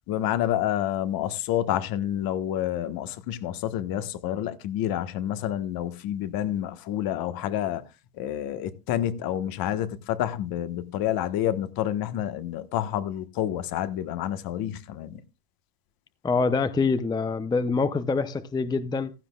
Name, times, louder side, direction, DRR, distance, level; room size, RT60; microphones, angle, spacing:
voice 1, 0.1-7.8 8.1-15.2, left 11 dB, 50° left, 1.3 m, -28 dB
voice 2, 16.2-19.1, left 4 dB, 10° left, 0.6 m, -25 dB
15.5 x 12.0 x 2.3 m
supercardioid pair, 110°, 44 cm